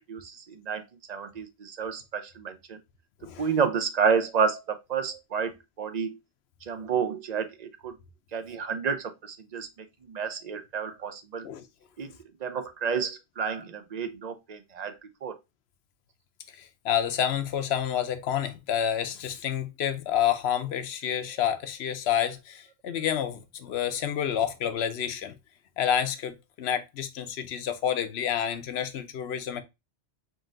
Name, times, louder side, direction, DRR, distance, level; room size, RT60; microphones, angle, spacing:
voice 1, 0.1-0.8 1.1-2.8 3.4-5.5 5.8-6.1 6.7-7.9 8.3-9.7 10.0-11.4 12.0-12.1 12.4-14.9 15.2-15.4, right 6 dB, 45° right, 0.6 m, -30 dB
voice 2, 16.6-25.3 25.8-29.6, left 9 dB, 70° left, 0.9 m, -29 dB
3.9 x 2.6 x 3.6 m
omnidirectional pair, 1.1 m